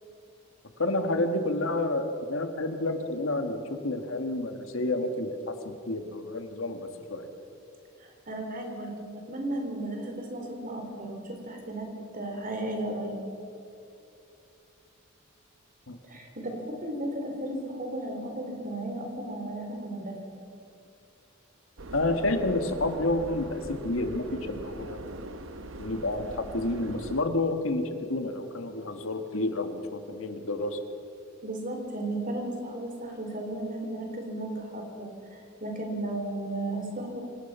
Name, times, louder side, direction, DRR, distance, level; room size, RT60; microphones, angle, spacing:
voice 1, 0.8-2.0 2.3-5.3 5.9-7.3 15.9-16.0 21.9-25.0 25.8-30.8, left 2 dB, 75° left, 6 dB, 1.8 m, -29 dB
voice 2, 8.0-13.2 16.0-20.2 31.4-37.2, right 1 dB, 40° right, 3 dB, 3.5 m, -35 dB
Subway metro underground, 21.8-27.2, right 2 dB, 65° right, 0.9 m, -41 dB
26.0 x 18.0 x 5.7 m, 2.7 s
head